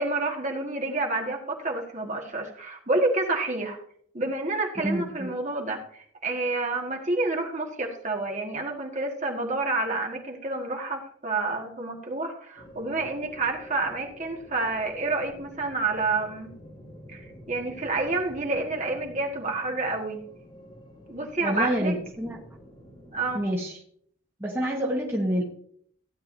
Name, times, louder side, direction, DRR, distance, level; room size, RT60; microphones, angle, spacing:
voice 1, 0.0-3.8 4.1-16.5 17.1-20.2 21.1-21.9 23.1-23.4, right 2 dB, 35° right, 1 dB, 1.7 m, -29 dB
voice 2, 4.8-5.3 21.4-22.4 23.3-23.8 24.4-25.4, equal, 10° right, -2 dB, 1.3 m, -27 dB
sound 1, 12.6-23.5, equal, 30° left, 3.5 m, -48 dB
16.0 x 10.0 x 2.7 m, 0.62 s
head